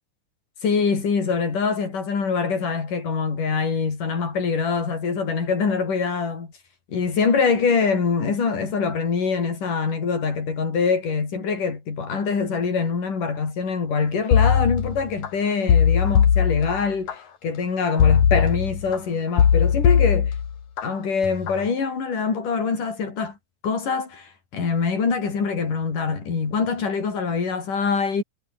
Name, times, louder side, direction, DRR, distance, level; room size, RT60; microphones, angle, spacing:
voice 1, 0.6-6.5 6.9-20.3 20.8-23.4 23.6-28.2, left 5 dB, 90° left, 6.5 m, -24 dB
sound 1, 14.3-15.3 15.7-17.1 18.0-19.0 19.4-20.8 21.2-21.6, left 8 dB, 65° left, 3.7 m, -19 dB
omnidirectional pair, 3.6 m